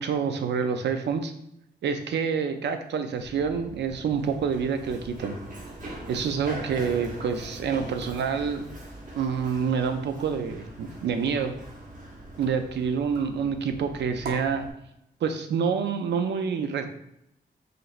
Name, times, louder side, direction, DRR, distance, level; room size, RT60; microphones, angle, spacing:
voice 1, 0.0-1.3 1.8-5.4 6.1-8.6 9.2-11.5 12.4-14.7 15.2-16.9, right 6 dB, 85° right, 7 dB, 0.4 m, -27 dB
Run, 3.2-14.7, right 1 dB, 50° right, 1.2 m, -42 dB
sound 1, 7.1-9.4 9.7-10.2 10.7-14.7, right 2 dB, 70° right, 0.9 m, -47 dB
5.0 x 3.0 x 2.5 m, 0.79 s
wide cardioid pair, 170°, 18 cm